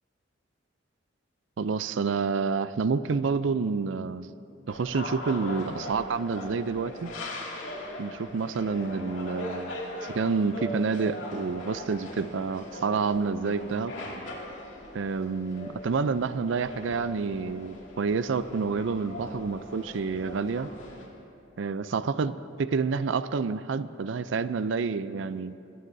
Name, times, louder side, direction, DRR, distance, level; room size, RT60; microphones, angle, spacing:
voice 1, 1.6-4.3 4.7-7.1 8.0-13.9 14.9-20.7 21.6-25.6, right 4 dB, 70° right, 14 dB, 0.4 m, -28 dB
sound 1, 4.7-21.1, left 1 dB, 75° left, 2.4 m, -40 dB
24.0 x 17.0 x 2.7 m, 2.7 s
head